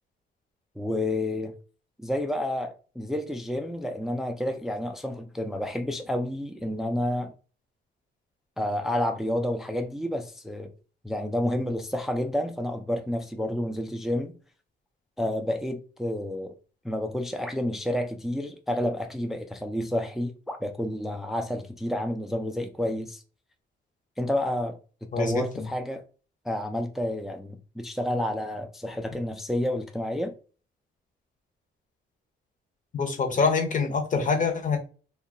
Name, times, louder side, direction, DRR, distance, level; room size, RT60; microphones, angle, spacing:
voice 1, 0.8-1.5 2.0-7.3 8.6-10.7 11.0-14.3 15.2-16.5 16.8-23.2 24.2-24.8 25.2-26.0 26.5-30.3, left 1 dB, ahead, 0.4 m, -30 dB
voice 2, 25.1-25.7 32.9-34.8, left 4 dB, 40° left, 0.8 m, -25 dB
2.7 x 2.3 x 2.5 m
cardioid pair, 90°, 20 cm